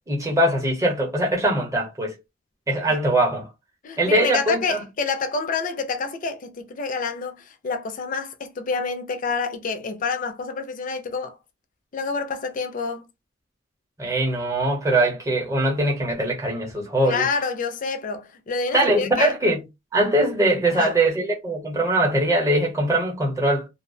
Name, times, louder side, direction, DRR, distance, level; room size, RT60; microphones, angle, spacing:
voice 1, 0.1-2.2 2.7-3.5 4.0-4.8 14.0-17.2 18.7-19.6 19.9-23.7, right 1 dB, 15° right, 0.8 m, -22 dB
voice 2, 3.8-11.4 11.9-13.0 17.1-19.3 20.7-20.9, left 4 dB, 45° left, 0.4 m, -28 dB
2.3 x 2.0 x 2.6 m
head